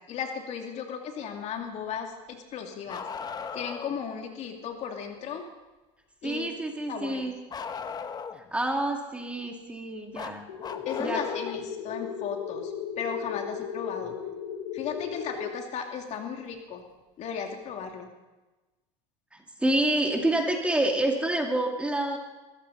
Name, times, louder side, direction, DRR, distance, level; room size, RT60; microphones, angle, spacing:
voice 1, 0.1-3.1 3.5-5.4 6.2-6.5 6.9-7.3 10.8-14.1 14.7-16.8 17.2-18.1, left 7 dB, 45° left, 3 dB, 2.6 m, -35 dB
Bark, 2.9-4.0 7.5-8.5 10.1-11.7 13.3-13.4 15.3-15.4 16.5-16.6, left 5 dB, 25° left, 1.0 m, -37 dB
voice 2, 6.2-7.3 8.3-10.4 11.0-11.2 19.3-22.2, right 1 dB, 5° right, 2 dB, 2.3 m, -28 dB
sound 1, 10.5-15.5, left 8 dB, 80° left, 1.7 m, -36 dB
21.0 x 15.5 x 4.1 m, 1.1 s
supercardioid pair, 110°, 16 cm